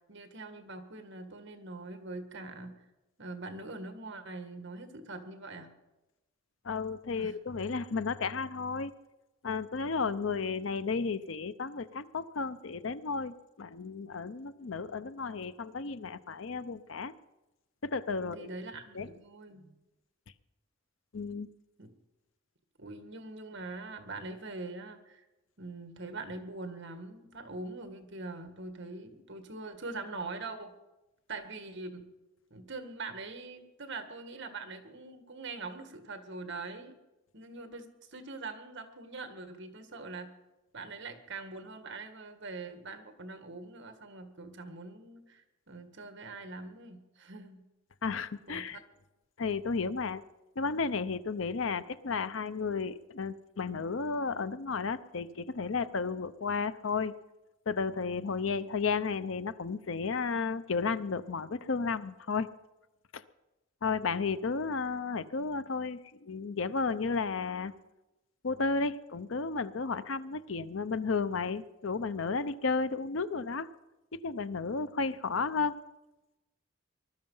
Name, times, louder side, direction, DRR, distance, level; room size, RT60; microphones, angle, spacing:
voice 1, 0.1-2.7 3.2-5.7 7.2-7.4 18.2-19.7 21.8-21.9 22.8-25.3 25.6-30.7 31.3-32.0 32.5-37.0 37.3-40.3 40.7-47.6 48.5-48.8, right 3 dB, 60° right, 8 dB, 1.8 m, -43 dB
voice 2, 6.6-8.9 9.4-17.1 17.8-18.5 18.9-19.1 21.1-21.5 48.0-48.8 49.4-50.2 50.6-57.1 57.7-62.5 63.1-63.2 63.8-67.7 68.4-73.7 74.2-75.8, left 4 dB, 70° left, 14 dB, 0.7 m, -33 dB
20.5 x 12.5 x 5.6 m, 1.0 s
head